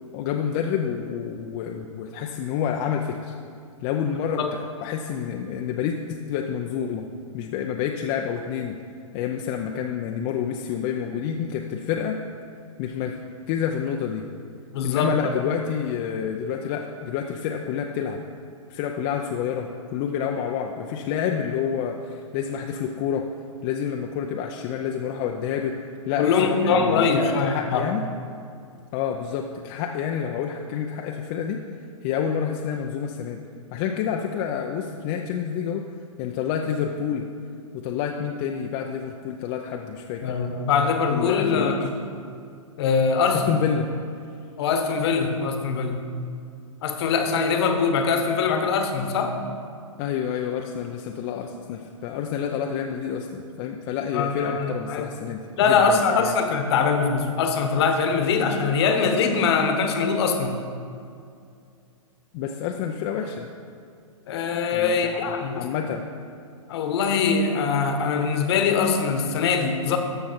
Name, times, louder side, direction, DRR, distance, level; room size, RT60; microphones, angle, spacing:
voice 1, 0.1-3.3 3.8-7.1 7.3-8.8 9.1-12.2 12.8-13.2 13.5-14.3 14.8-18.2 18.7-23.3 23.6-25.8 26.1-28.1 28.9-31.6 32.0-33.4 33.7-35.8 36.2-37.3 37.7-40.4 41.1-41.8 43.5-43.9 50.0-56.4 62.3-63.5 64.7-66.1, left 8 dB, 30° left, 2 dB, 0.5 m, -28 dB
voice 2, 14.7-15.4 26.2-27.9 40.2-41.9 42.8-43.5 44.6-46.0 46.8-49.4 54.1-55.1 55.6-60.6 64.3-65.7 66.7-70.0, left 5 dB, 50° left, 5 dB, 1.2 m, -22 dB
13.5 x 5.7 x 4.3 m, 2.4 s
hypercardioid pair, 125°, 17 cm